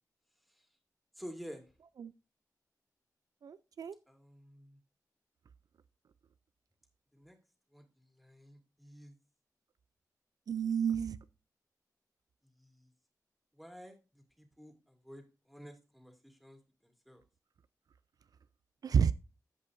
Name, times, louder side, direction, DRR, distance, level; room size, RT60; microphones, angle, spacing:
voice 1, 1.2-1.6 4.1-4.8 7.1-7.4 7.7-9.1 12.6-12.9 13.5-17.2, equal, ahead, 2.3 m, -51 dB
voice 2, 3.4-3.9 10.5-11.2 18.8-19.1, right 7 dB, 70° right, 0.3 m, -30 dB
15.5 x 5.4 x 2.6 m
wide cardioid pair, 80°, 7 cm